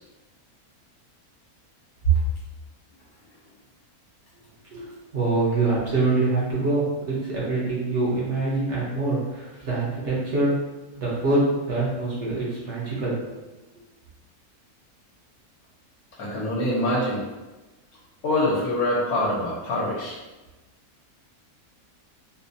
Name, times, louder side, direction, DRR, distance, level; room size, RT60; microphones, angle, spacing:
voice 1, 5.1-10.5 11.0-13.4, right 2 dB, 50° right, -7 dB, 1.4 m, -25 dB
voice 2, 16.2-17.2 18.2-20.2, left 1 dB, 80° left, -4 dB, 1.4 m, -24 dB
4.2 x 2.2 x 2.7 m, 1.1 s
omnidirectional pair, 1.6 m